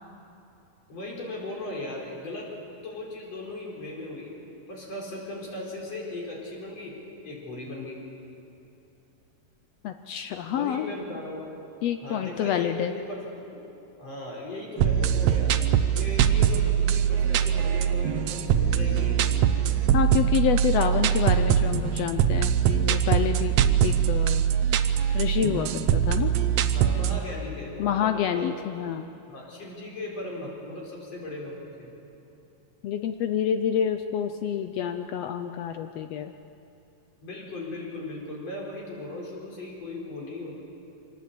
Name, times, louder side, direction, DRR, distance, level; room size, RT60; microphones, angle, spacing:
voice 1, 0.9-2.5 2.7-4.3 4.7-7.0 7.2-8.0 10.5-11.5 12.0-13.6 14.0-15.6 15.9-19.2 23.6-23.7 26.7-28.5 29.3-32.0 37.2-40.6, left 2 dB, 50° left, -3 dB, 5.5 m, -37 dB
voice 2, 9.8-10.9 11.8-12.9 19.9-23.6 23.8-24.4 25.1-26.3 27.8-29.1 32.8-36.3, left 9 dB, 90° left, 8 dB, 1.4 m, -28 dB
sound 1, 14.8-27.2, right 9 dB, 70° right, 1.8 m, -23 dB
24.5 x 19.0 x 8.4 m, 2.7 s
omnidirectional pair, 3.8 m